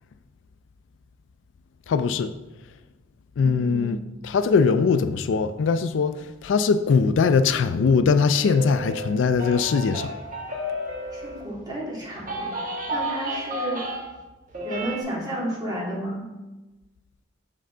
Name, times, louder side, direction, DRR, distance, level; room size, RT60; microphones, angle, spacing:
voice 1, 1.9-2.3 3.4-4.0 4.2-10.1, left 5 dB, 70° left, 11 dB, 0.3 m, -21 dB
voice 2, 3.4-4.0 11.1-12.5 12.9-13.9 14.6-16.2, right 1 dB, 20° right, -5 dB, 2.2 m, -32 dB
sound 1, 8.4-11.7 12.1-14.2 14.5-15.0, right 1 dB, 45° right, 1.4 m, -32 dB
6.6 x 5.5 x 3.8 m, 1.1 s
head